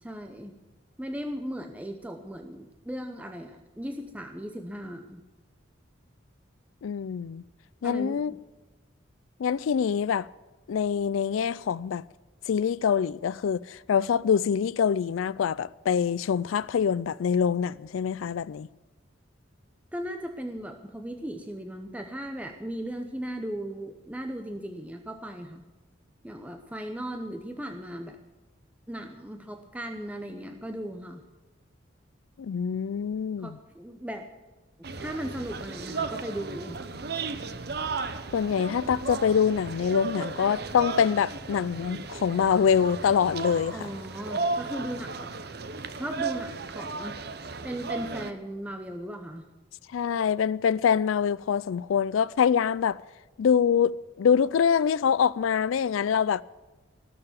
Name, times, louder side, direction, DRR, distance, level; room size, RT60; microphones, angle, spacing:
voice 1, 0.0-0.5 1.0-5.2 7.8-8.4 19.9-25.6 26.2-28.2 28.9-31.2 33.4-34.3 34.9-36.8 43.7-45.3 45.9-47.2 47.6-49.5, equal, 5° right, 0.8 m, -37 dB
voice 2, 6.8-7.4 7.8-8.3 9.4-10.3 10.7-12.0 12.5-18.7 32.4-33.6 38.3-43.9 49.9-53.0 53.4-56.4, left 7 dB, 85° left, 0.4 m, -25 dB
sound 1, 34.8-48.3, right 4 dB, 55° right, 0.9 m, -35 dB
18.5 x 6.8 x 9.3 m
head